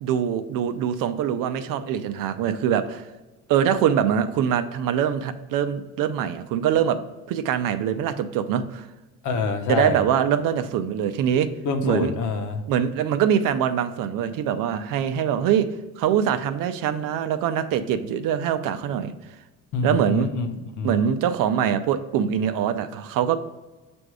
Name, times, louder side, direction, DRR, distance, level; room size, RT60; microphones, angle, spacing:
voice 1, 0.0-3.0 3.5-7.0 7.3-8.9 9.7-11.5 11.8-12.1 12.7-15.7 16.0-19.1 19.8-20.3 20.8-23.4, right 9 dB, 80° right, 10 dB, 0.6 m, -23 dB
voice 2, 9.2-10.0 11.6-12.6 19.7-21.0, left 4 dB, 65° left, 6 dB, 0.9 m, -26 dB
7.7 x 2.6 x 4.7 m, 1.2 s
cardioid pair, 135°, 33 cm